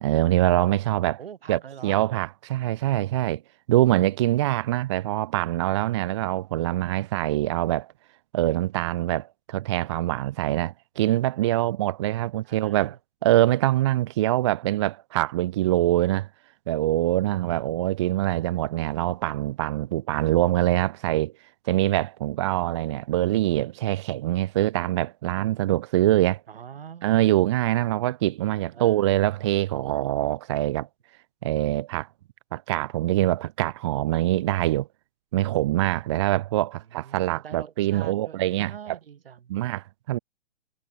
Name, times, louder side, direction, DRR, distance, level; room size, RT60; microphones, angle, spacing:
voice 1, 0.0-1.2 1.5-3.4 3.7-7.9 8.3-13.0 13.2-16.3 16.7-21.3 21.7-26.4 27.0-30.9 31.4-32.1 32.5-34.9 35.3-38.7 39.5-40.2, right 15 dB, 30° right, 0.4 m, -24 dB
voice 2, 1.2-2.1 12.4-13.0 26.5-27.4 28.7-29.3 36.9-39.5, right 8 dB, 75° right, 2.0 m, -43 dB
hypercardioid pair, 145°, 29 cm